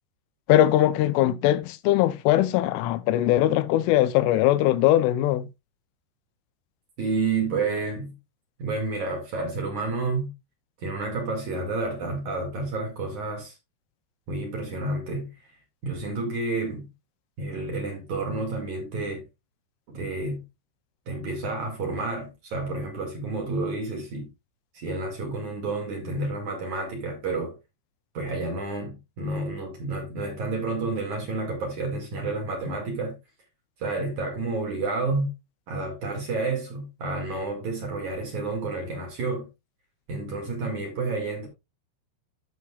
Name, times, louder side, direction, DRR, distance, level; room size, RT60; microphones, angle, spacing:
voice 1, 0.5-5.5, left 13 dB, 85° left, 3.1 m, -21 dB
voice 2, 7.0-8.1 8.6-10.3 10.8-13.5 14.3-15.3 15.8-16.9 17.4-19.2 19.9-20.4 21.1-24.3 24.7-27.5 28.1-33.2 33.8-35.3 35.7-39.5 40.1-41.5, right 3 dB, 50° right, 2.9 m, -30 dB
14.5 x 6.0 x 2.3 m
omnidirectional pair, 5.6 m